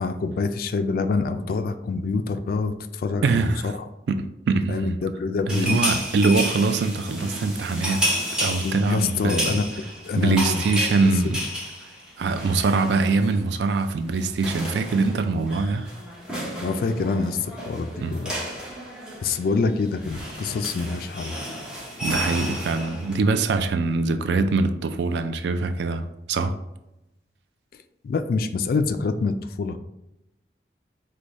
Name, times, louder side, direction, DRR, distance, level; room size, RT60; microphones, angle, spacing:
voice 1, 0.0-3.8 4.7-5.8 8.6-9.7 10.0-10.6 16.6-18.3 19.2-21.4 28.0-29.8, left 4 dB, 55° left, 0.3 m, -26 dB
voice 2, 3.2-3.7 4.1-5.0 5.5-8.0 8.4-9.6 10.2-11.4 11.8-11.9 12.2-15.9 18.0-18.2 22.0-26.6, right 3 dB, 70° right, 0.3 m, -23 dB
sound 1, 5.5-13.4 13.6-13.8 14.1-23.1, equal, 5° right, 0.8 m, -31 dB
4.8 x 2.2 x 4.0 m
head